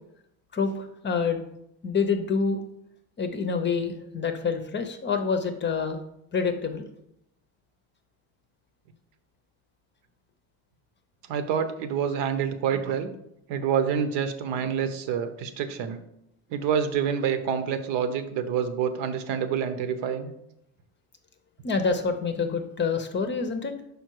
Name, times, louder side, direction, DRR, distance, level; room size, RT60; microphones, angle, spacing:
voice 1, 0.5-1.4 1.8-2.6 3.2-6.0 6.3-6.9 21.6-23.7, left 5 dB, 25° left, 7 dB, 0.6 m, -27 dB
voice 2, 11.3-13.1 13.5-16.0 16.5-20.3, right 7 dB, 70° right, 9 dB, 1.0 m, -27 dB
5.7 x 5.2 x 4.6 m, 0.78 s
cardioid pair, 130°, 45 cm